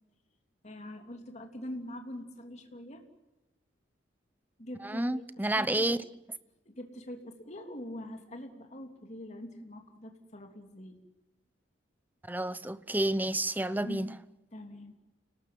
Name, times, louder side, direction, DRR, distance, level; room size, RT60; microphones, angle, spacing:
voice 1, 0.6-3.0 4.6-6.0 6.6-11.0 13.8-14.1 14.5-15.0, left 1 dB, 40° left, 3.3 m, -44 dB
voice 2, 4.8-6.0 12.2-14.1, right 1 dB, 10° right, 0.8 m, -30 dB
29.0 x 19.0 x 7.8 m
head